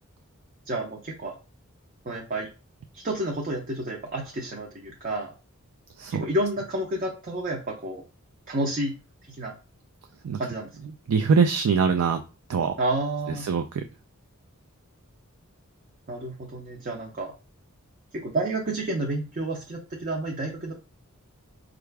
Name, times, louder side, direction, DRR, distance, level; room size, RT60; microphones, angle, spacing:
voice 1, 0.7-1.4 2.1-2.5 2.9-5.3 6.1-8.0 8.5-8.9 9.3-9.6 10.3-10.7 12.8-13.5 16.1-17.3 18.1-20.7, right 1 dB, 40° right, -1 dB, 0.6 m, -30 dB
voice 2, 11.1-12.2 12.5-12.7 13.4-13.8, right 5 dB, 80° right, 6 dB, 0.4 m, -22 dB
4.6 x 2.5 x 3.3 m, 0.32 s
head